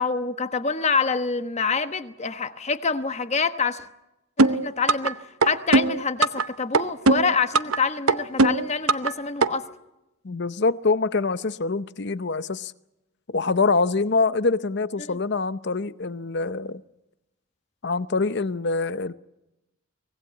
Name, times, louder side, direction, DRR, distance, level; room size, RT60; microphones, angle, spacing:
voice 1, 0.0-3.8 4.4-5.2 5.4-9.7 15.1-15.2, left 4 dB, 30° left, 1.1 m, -26 dB
sound 1, 4.4-5.1 5.4-6.4 6.7-7.8 8.1-9.1 9.4-9.5, right 3 dB, 80° right, 0.9 m, -19 dB
voice 2, 10.2-12.7 13.3-16.8 17.8-19.1, left 3 dB, 55° left, 0.7 m, -25 dB
24.5 x 18.5 x 8.2 m
head